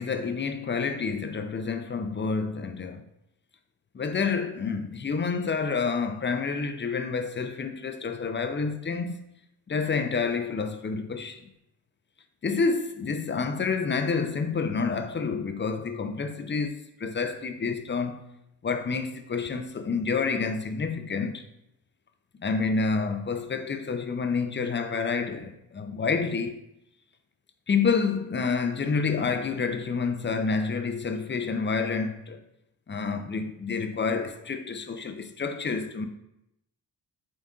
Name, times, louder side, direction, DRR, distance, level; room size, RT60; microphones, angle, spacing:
voice 1, 0.0-3.0 3.9-9.2 9.7-11.5 12.4-18.2 18.6-21.4 22.4-26.6 27.7-32.4 32.9-36.1, left 5 dB, 25° left, 0.5 m, -28 dB
7.3 x 2.6 x 2.4 m
supercardioid pair, 50°, 43 cm